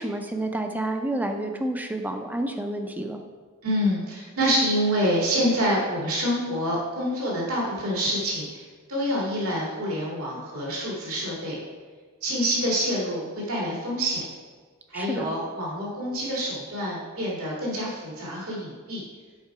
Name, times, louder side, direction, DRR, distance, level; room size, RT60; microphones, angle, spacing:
voice 1, 0.0-3.2 14.9-15.3, right 1 dB, 10° right, 5 dB, 0.5 m, -29 dB
voice 2, 3.6-11.6 12.2-14.3 14.9-19.0, equal, 80° right, -5 dB, 2.3 m, -27 dB
7.4 x 4.8 x 4.8 m, 1.5 s
head